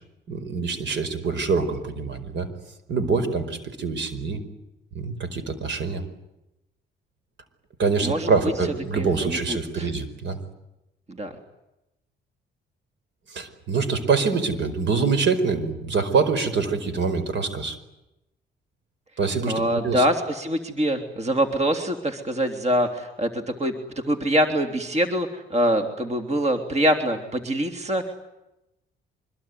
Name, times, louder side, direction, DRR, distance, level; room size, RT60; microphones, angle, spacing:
voice 1, 0.3-2.5 2.9-4.4 4.9-6.0 7.8-10.4 13.3-17.8 19.2-20.0, right 4 dB, 65° right, 11 dB, 4.9 m, -25 dB
voice 2, 9.0-9.9 11.1-11.3 19.5-23.7 24.1-28.1, equal, 35° right, 6 dB, 3.5 m, -24 dB
25.0 x 22.5 x 9.6 m, 0.91 s
cardioid pair, 90°, 20 cm